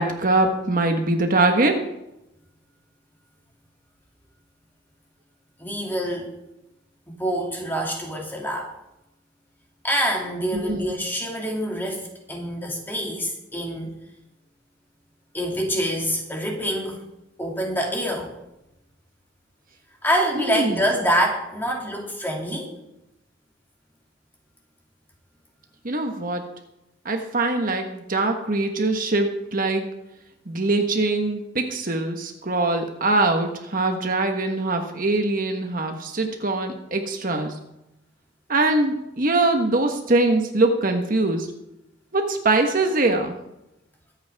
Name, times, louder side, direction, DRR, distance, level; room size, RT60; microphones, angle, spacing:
voice 1, 0.0-1.8 10.5-10.9 20.4-20.8 25.8-26.4 27.0-29.8 30.5-37.5 38.5-41.5 42.1-43.3, right 2 dB, 45° right, 4 dB, 1.3 m, -22 dB
voice 2, 5.6-6.3 7.1-8.7 9.8-13.9 15.3-17.0 17.4-18.3 20.0-22.7, equal, 10° left, -1 dB, 2.5 m, -26 dB
23.0 x 8.8 x 3.5 m, 0.90 s
head